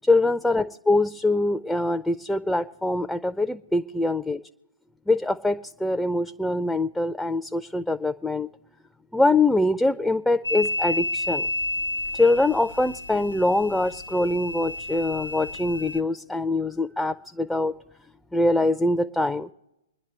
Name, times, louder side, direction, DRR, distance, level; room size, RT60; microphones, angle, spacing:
voice 1, 0.0-4.4 5.1-8.5 9.1-11.5 12.1-17.7 18.3-19.5, left 2 dB, 5° left, 9 dB, 0.4 m, -23 dB
sound 1, 10.4-16.0, left 2 dB, 75° left, 0.6 m, -31 dB
25.5 x 10.5 x 3.2 m, 0.90 s
figure-of-eight pair, 115°, 0 cm